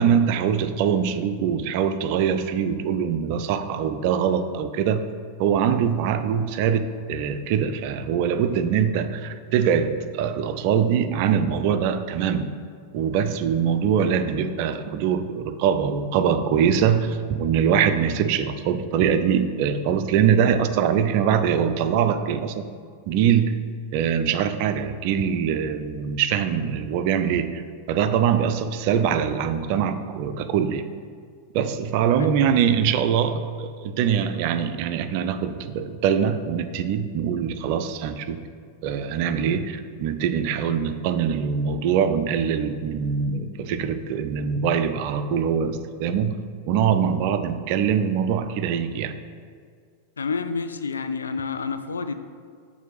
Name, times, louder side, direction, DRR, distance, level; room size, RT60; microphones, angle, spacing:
voice 1, 0.0-5.1 5.4-12.5 12.9-22.6 23.1-23.6 23.9-27.6 27.9-30.9 31.5-38.4 38.8-46.4 46.7-49.2, right 7 dB, 45° right, 10 dB, 0.3 m, -23 dB
voice 2, 50.2-52.1, left 5 dB, 70° left, 9 dB, 0.3 m, -29 dB
7.4 x 2.6 x 4.9 m, 2.1 s
figure-of-eight pair, 90°, 0 cm